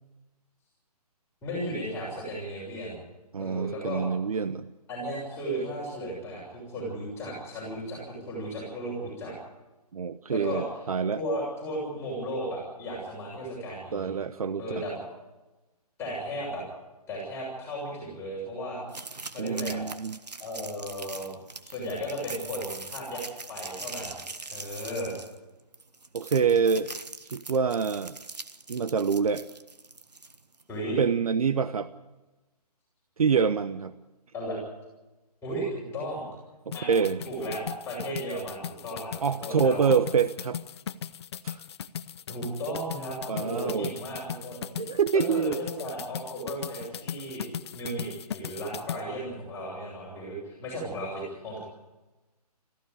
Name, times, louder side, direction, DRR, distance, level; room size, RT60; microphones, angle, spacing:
voice 1, 1.4-3.0 3.4-4.0 4.9-9.3 10.3-10.6 11.2-14.1 14.6-15.0 16.0-16.6 17.1-18.8 19.3-19.8 20.4-21.3 21.6-23.2 23.5-24.2 24.5-25.1 30.7-31.0 34.3-34.6 35.4-36.2 36.7-36.9 37.2-39.8 42.3-44.6 45.1-51.6, equal, 10° left, -5 dB, 6.7 m, -35 dB
voice 2, 3.3-4.7 9.9-11.2 13.9-14.6 19.4-20.2 26.1-26.9 27.3-28.2 28.7-29.4 31.0-31.9 33.2-33.9 36.7-37.2 39.2-40.6 41.4-41.6 43.3-43.9 44.8-45.6, right 6 dB, 60° right, 12 dB, 0.8 m, -26 dB
sound 1, 18.9-30.6, right 3 dB, 90° right, 1.5 m, -42 dB
sound 2, 36.7-49.0, left 8 dB, 40° left, 0.6 m, -38 dB
18.0 x 15.0 x 9.8 m, 1.1 s
figure-of-eight pair, 150°, 20 cm